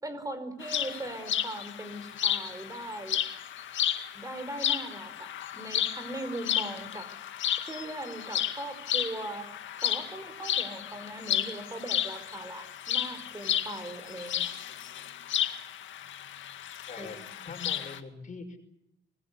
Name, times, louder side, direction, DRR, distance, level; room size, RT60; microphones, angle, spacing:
voice 1, 0.0-3.2 4.1-7.1 7.6-9.5 9.8-14.5 17.0-17.5, right 1 dB, 15° right, 10 dB, 5.1 m, -40 dB
sound 1, 0.6-18.0, left 10 dB, 75° left, 2.1 m, -33 dB
voice 2, 16.9-18.6, left 4 dB, 40° left, 7 dB, 5.6 m, -43 dB
25.5 x 21.0 x 8.4 m, 0.84 s
cardioid pair, 90°, 20 cm